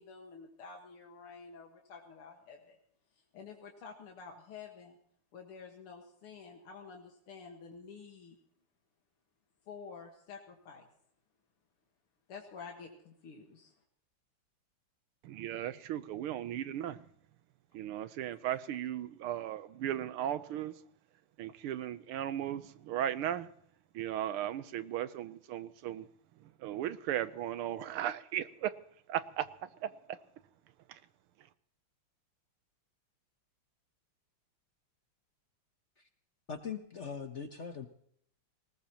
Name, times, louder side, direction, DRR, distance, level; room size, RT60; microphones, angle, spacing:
voice 1, 0.0-2.8 3.3-5.0 5.3-8.4 9.7-10.9 12.3-13.7, left 5 dB, 85° left, 2.5 m, -50 dB
voice 2, 15.2-17.1 17.7-20.8 21.4-23.5 23.9-26.1 26.4-28.8 29.1-30.2 30.9-31.0, right 11 dB, 85° right, 1.7 m, -36 dB
voice 3, 36.5-37.9, left 6 dB, 50° left, 0.8 m, -40 dB
19.5 x 19.5 x 3.0 m
omnidirectional pair, 2.4 m